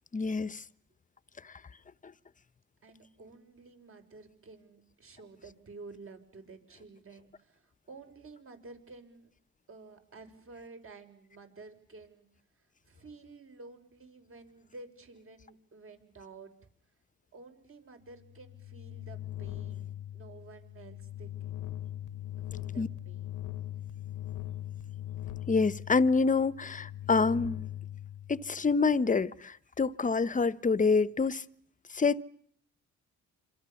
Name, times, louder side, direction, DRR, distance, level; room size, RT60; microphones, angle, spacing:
voice 1, 0.1-0.6 22.8-22.9 25.5-27.7 28.3-31.4 31.9-32.2, left 4 dB, 25° left, 1.1 m, -27 dB
voice 2, 2.8-9.3 9.7-12.3 12.6-16.5 17.3-21.5 22.4-23.4, right 3 dB, 45° right, 6.3 m, -51 dB
sound 1, 18.2-28.8, left 13 dB, 80° left, 1.2 m, -41 dB
27.5 x 26.0 x 7.1 m
cardioid pair, 90°, 30 cm